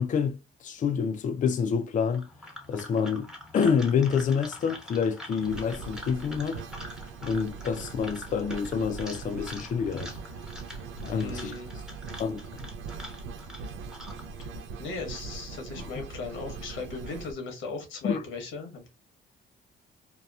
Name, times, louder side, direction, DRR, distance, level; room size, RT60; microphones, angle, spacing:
voice 1, 0.0-2.3 2.7-6.6 7.2-10.2 11.0-11.5 12.2-12.4 18.0-18.2, left 6 dB, 40° left, 0.4 m, -27 dB
sound 1, 2.1-14.4, left 1 dB, 5° right, 0.8 m, -45 dB
sound 2, 5.4-17.3, right 4 dB, 85° right, 0.4 m, -41 dB
voice 2, 11.2-11.7 14.4-14.5 14.8-18.9, left 4 dB, 90° left, 1.1 m, -37 dB
2.8 x 2.2 x 2.2 m
cardioid pair, 90°, 20 cm